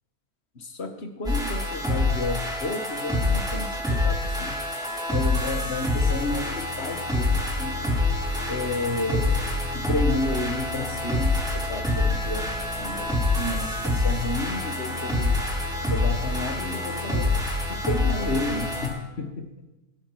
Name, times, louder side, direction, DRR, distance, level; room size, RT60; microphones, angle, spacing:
voice 1, 0.5-4.7 5.1-7.8 8.5-15.4 15.9-19.5, left 2 dB, 45° left, 6 dB, 1.6 m, -32 dB
sound 1, 1.2-18.9, left 2 dB, ahead, 4.0 m, -26 dB
19.0 x 11.0 x 4.6 m, 1.0 s
omnidirectional pair, 1.6 m